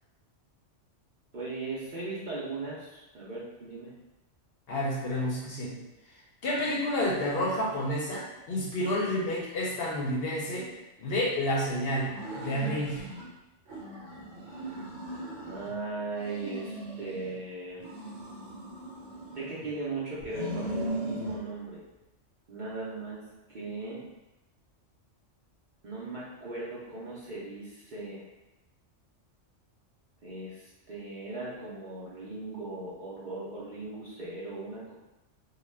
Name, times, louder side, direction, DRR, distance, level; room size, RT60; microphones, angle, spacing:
voice 1, 1.3-3.9 15.4-17.8 19.3-21.8 22.5-23.2 23.5-24.0 25.8-28.2 30.2-34.9, right 3 dB, 50° right, -8 dB, 0.6 m, -38 dB
voice 2, 4.7-5.7 6.4-10.7 11.0-13.1, left 1 dB, 65° left, -4 dB, 0.7 m, -30 dB
sound 1, 12.0-13.3 13.7-15.7 16.1-17.4 17.8-19.7 20.2-21.4, right 1 dB, 75° right, 1.1 m, -38 dB
2.3 x 2.2 x 3.2 m, 0.99 s
omnidirectional pair, 1.2 m